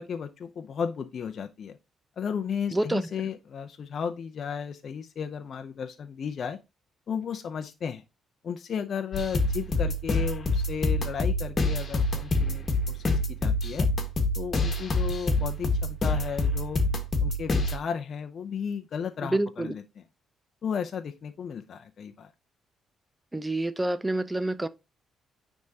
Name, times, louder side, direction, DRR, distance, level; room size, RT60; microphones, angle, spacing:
voice 1, 0.0-1.8 2.2-6.6 7.1-8.0 8.4-13.9 14.4-16.8 17.2-20.0 20.6-22.3, left 7 dB, 55° left, 0.6 m, -34 dB
voice 2, 2.7-3.1 19.2-19.8 23.3-24.7, right 1 dB, 15° right, 0.6 m, -28 dB
sound 1, 9.1-17.8, left 2 dB, 40° left, 1.5 m, -26 dB
9.5 x 3.6 x 2.8 m
cardioid pair, 90°, 0 cm